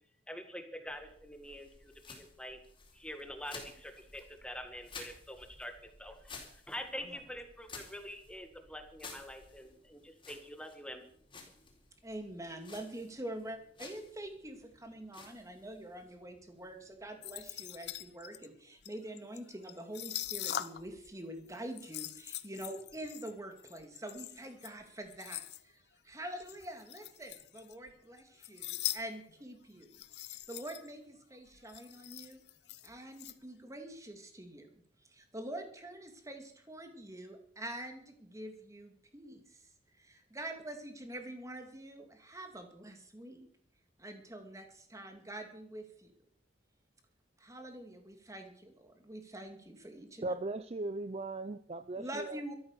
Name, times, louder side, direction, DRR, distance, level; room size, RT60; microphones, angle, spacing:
voice 1, 0.3-2.6 2.9-5.7 6.0-11.1, equal, 5° left, 1.8 m, -46 dB
sound 1, 0.9-18.1, left 4 dB, 30° left, 4.2 m, -54 dB
voice 2, 12.0-29.9 30.2-32.5 32.8-34.7 35.0-39.7 40.0-43.5 44.0-46.1 47.4-50.3 51.9-52.5, right 1 dB, 20° right, 2.5 m, -45 dB
sound 2, 17.2-21.1 21.4-25.6 26.4-27.9 28.2-29.0 29.3-29.4 29.8-30.9 31.2-31.3 31.5-33.3, left 12 dB, 65° left, 0.8 m, -42 dB
voice 3, 50.2-52.4, right 2 dB, 35° right, 0.6 m, -38 dB
13.5 x 12.0 x 6.7 m
head